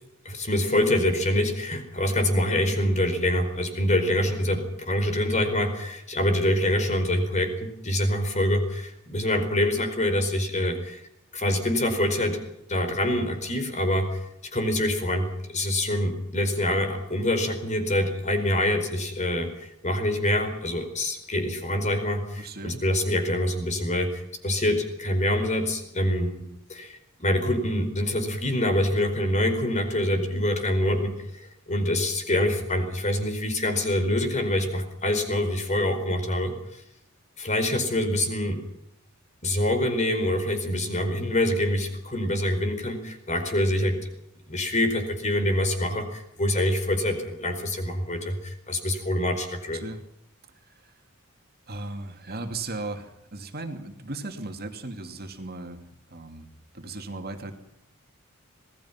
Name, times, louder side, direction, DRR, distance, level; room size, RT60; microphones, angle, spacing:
voice 1, 0.2-11.0 11.3-12.4 12.7-14.2 14.5-36.8 37.4-38.6 39.4-44.0 44.5-49.8, left 1 dB, 30° left, 7 dB, 4.6 m, -25 dB
voice 2, 22.4-22.8 49.7-50.0 50.8-50.9 51.7-55.8 56.1-56.5 56.7-57.5, right 2 dB, 45° right, 5 dB, 2.6 m, -36 dB
26.5 x 19.0 x 5.8 m, 0.79 s
head